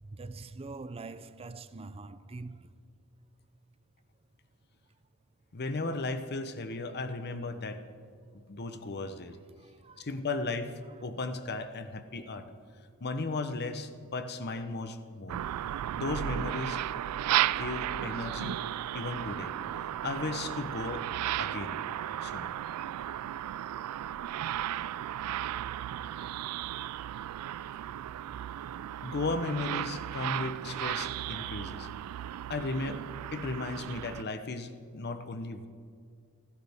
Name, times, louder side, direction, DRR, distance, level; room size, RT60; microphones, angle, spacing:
voice 1, 0.0-2.8 9.6-10.1, right 3 dB, 25° right, 0.5 m, -44 dB
voice 2, 5.5-7.8 8.5-9.4 10.0-10.7 11.0-12.5 13.0-15.4 16.0-16.8 17.5-18.6 18.9-19.5 20.0-21.1 21.4-21.8 22.2-22.5 29.0-31.9 32.5-33.0 33.3-35.7, left 3 dB, 50° left, 0.9 m, -35 dB
sound 1, 15.3-34.2, right 12 dB, 90° right, 0.3 m, -35 dB
27.5 x 12.0 x 3.6 m
head